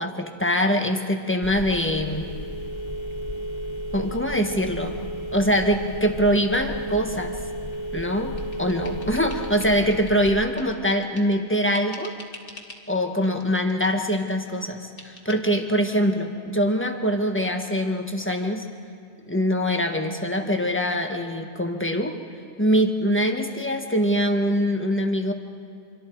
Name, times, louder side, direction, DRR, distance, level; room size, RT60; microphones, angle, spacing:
voice 1, 0.0-2.3 3.9-5.0 5.3-7.4 7.9-12.1 12.9-18.6 19.3-22.1 22.6-25.3, equal, 10° left, 4 dB, 1.4 m, -23 dB
Telephone, 1.4-10.4, equal, 25° left, 0.8 m, -33 dB
sound 1, 7.7-11.4 11.7-12.9 13.2-14.4 15.0-15.5, left 2 dB, 40° left, 2.1 m, -46 dB
26.5 x 23.5 x 4.7 m, 2.2 s
omnidirectional pair, 1.4 m